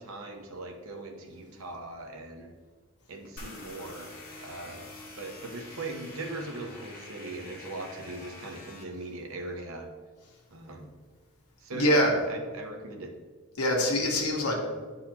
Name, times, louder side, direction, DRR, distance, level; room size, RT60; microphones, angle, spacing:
voice 1, 0.0-2.5 3.1-4.1 4.4-4.9 5.2-9.9 10.5-10.9 11.6-13.1, right 2 dB, 70° right, 3 dB, 0.8 m, -39 dB
sound 1, 3.4-8.8, left 2 dB, 40° left, 1.4 m, -46 dB
voice 2, 11.7-12.1 13.6-14.5, left 1 dB, 85° left, 0 dB, 1.3 m, -24 dB
10.0 x 4.0 x 2.9 m, 1.4 s
head